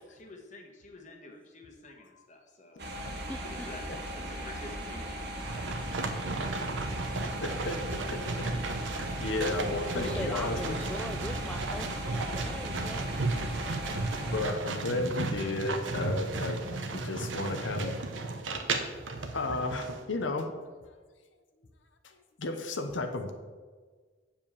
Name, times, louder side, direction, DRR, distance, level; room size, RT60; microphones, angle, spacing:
voice 1, 0.2-2.9 3.5-3.8 4.2-5.9, left 2 dB, 40° left, 2 dB, 1.4 m, -49 dB
sound 1, 2.8-14.4, right 1 dB, 60° right, 1.6 m, -38 dB
voice 2, 3.3-3.7 7.5-7.6 9.1-13.3, left 1 dB, 5° left, 7 dB, 0.3 m, -41 dB
sound 2, 5.4-20.0, right 3 dB, 85° right, 0.9 m, -34 dB
voice 3, 6.9-10.8 14.3-16.6 16.9-17.9 19.3-20.5 22.0-23.3, left 2 dB, 85° left, 6 dB, 0.9 m, -34 dB
7.3 x 5.1 x 7.2 m, 1.5 s
head